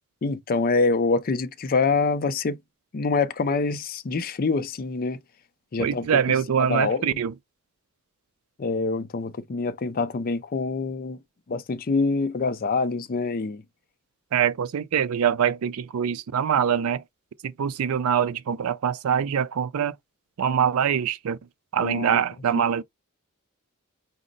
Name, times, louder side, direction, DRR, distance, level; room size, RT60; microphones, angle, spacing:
voice 1, 0.2-2.6 2.9-5.2 5.7-6.1 6.6-7.2 8.6-11.2 11.5-13.6 21.8-22.2 22.5-22.6, left 4 dB, 40° left, 0.4 m, -25 dB
voice 2, 5.8-7.3 14.3-17.0 17.4-19.9 20.4-21.4 21.7-22.8, right 8 dB, 75° right, 0.4 m, -24 dB
5.1 x 2.0 x 3.8 m
head